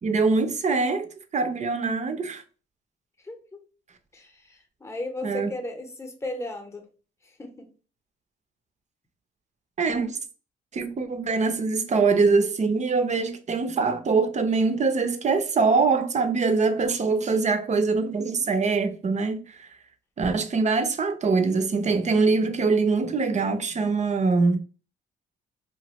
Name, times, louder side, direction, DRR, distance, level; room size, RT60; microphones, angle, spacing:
voice 1, 0.0-2.4 5.2-5.5 9.8-10.2 10.7-19.7 20.2-24.6, right 4 dB, 35° right, 0.5 m, -23 dB
voice 2, 3.2-3.6 4.1-6.9 7.2-7.7, left 1 dB, 15° left, 0.8 m, -36 dB
2.9 x 2.4 x 2.9 m
cardioid pair, 90°, 20 cm